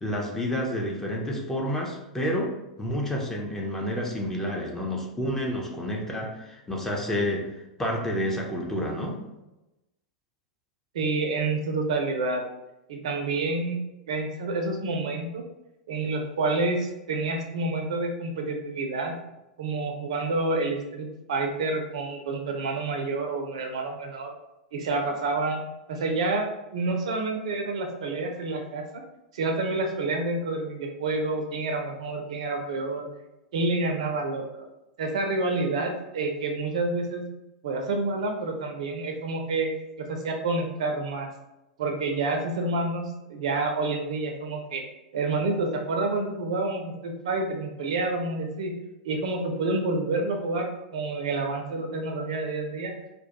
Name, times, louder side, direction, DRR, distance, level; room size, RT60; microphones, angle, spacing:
voice 1, 0.0-7.5 7.8-9.2, equal, 10° left, -1 dB, 0.5 m, -29 dB
voice 2, 10.9-12.4 12.9-13.8 14.1-15.4 15.9-19.1 19.6-24.3 24.7-25.6 25.9-26.4 26.7-29.0 29.3-33.1 33.5-34.5 35.0-37.2 37.6-39.7 40.1-41.3 41.8-43.0 43.3-44.8 45.1-48.7 49.0-50.7 50.9-52.9, right 3 dB, 60° right, 3 dB, 0.4 m, -28 dB
2.2 x 2.1 x 2.8 m, 0.95 s
figure-of-eight pair, 90°, 4 cm